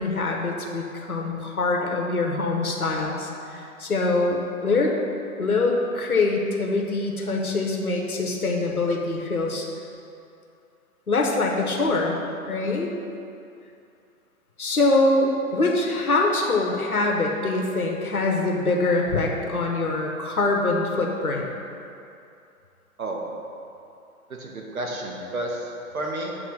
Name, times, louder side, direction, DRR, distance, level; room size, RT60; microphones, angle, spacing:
voice 1, 0.0-4.9 5.4-9.7 11.1-12.2 12.4-12.9 14.6-21.5, left 3 dB, 85° left, 0 dB, 1.1 m, -24 dB
voice 2, 24.3-26.4, right 1 dB, 75° right, -1 dB, 1.3 m, -31 dB
8.3 x 3.0 x 5.4 m, 2.6 s
figure-of-eight pair, 125°, 43 cm